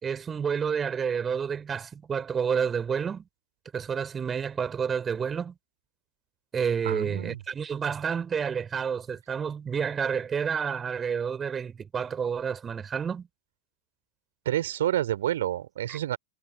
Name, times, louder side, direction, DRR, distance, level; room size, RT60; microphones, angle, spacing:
voice 1, 0.0-3.2 3.7-5.5 6.5-13.3 15.9-16.0, right 7 dB, 20° right, 3.8 m, -29 dB
voice 2, 6.8-7.4 14.5-16.2, right 12 dB, 60° right, 3.5 m, -28 dB
figure-of-eight pair, 90°, 0 cm